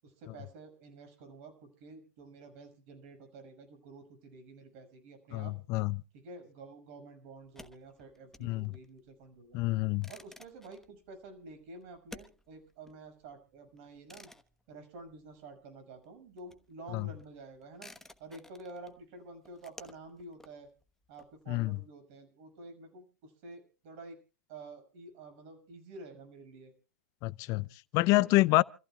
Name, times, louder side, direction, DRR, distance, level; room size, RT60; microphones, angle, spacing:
voice 1, 0.0-5.5 6.1-9.6 10.1-14.3 14.7-17.9 18.2-20.7 21.1-24.2 24.5-26.7 28.0-28.3, right 2 dB, 50° right, 6.3 m, -50 dB
voice 2, 5.3-6.0 8.4-8.7 9.5-10.1 16.9-17.1 21.5-21.8 27.2-28.6, left 21 dB, 40° left, 0.6 m, -28 dB
sound 1, 7.4-15.7 16.0-21.8, left 2 dB, 5° left, 1.2 m, -55 dB
28.5 x 14.5 x 2.3 m
hypercardioid pair, 115°, 9 cm